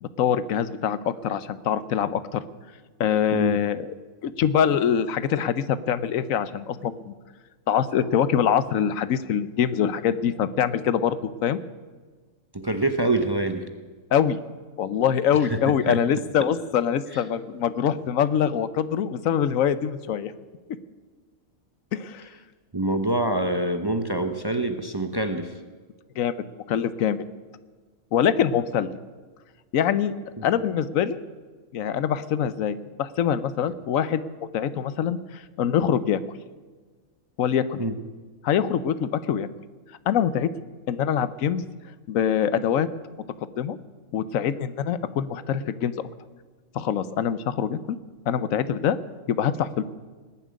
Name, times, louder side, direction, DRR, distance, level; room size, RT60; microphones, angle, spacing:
voice 1, 0.0-2.4 3.0-3.9 4.2-7.1 7.7-11.6 14.1-14.4 14.8-20.3 21.9-22.3 26.2-27.2 28.1-29.0 29.7-30.1 30.4-31.2 31.7-34.2 34.5-36.2 37.4-37.9 38.4-39.5 40.1-40.5 40.9-41.6 42.1-42.9 43.6-43.8 44.1-46.1 46.7-48.0 48.3-49.0 49.3-49.8, left 8 dB, 80° left, 15 dB, 1.1 m, -24 dB
voice 2, 12.5-13.7 15.4-15.6 15.9-16.0 22.7-25.5 30.4-30.5 37.8-37.9, right 2 dB, 20° right, 7 dB, 0.8 m, -25 dB
19.5 x 7.5 x 9.5 m, 1.4 s
omnidirectional pair, 1.4 m